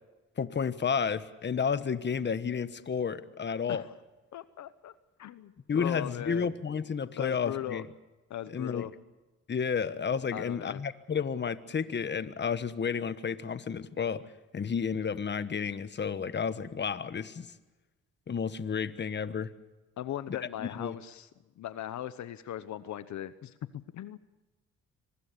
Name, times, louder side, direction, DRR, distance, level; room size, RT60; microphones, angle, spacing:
voice 1, 0.4-3.8 5.7-7.8 8.5-8.9 9.5-14.2 14.5-17.5 18.3-19.5 20.6-20.9, left 6 dB, 35° left, 13 dB, 1.3 m, -31 dB
voice 2, 4.3-4.9 5.2-6.5 7.2-7.8 8.3-8.9 10.3-10.8 20.0-21.3 21.6-24.2, left 11 dB, 70° left, 14 dB, 1.0 m, -38 dB
25.0 x 20.5 x 6.8 m, 1.1 s
cardioid pair, 90°, 30 cm